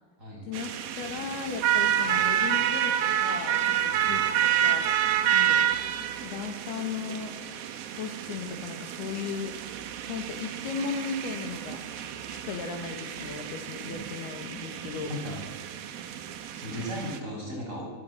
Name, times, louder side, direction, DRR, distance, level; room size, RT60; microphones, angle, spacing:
sound 1, 0.5-17.2, right 10 dB, 70° right, 2.9 m, -29 dB
voice 1, 1.0-4.9 5.3-5.7 6.2-7.3 8.0-9.6 10.1-11.8 12.3-15.1, left 6 dB, 75° left, 5 dB, 3.7 m, -36 dB
voice 2, 15.0-15.4 16.6-17.8, equal, 15° right, -2 dB, 7.7 m, -36 dB
23.5 x 16.5 x 7.8 m, 1.3 s
omnidirectional pair, 4.7 m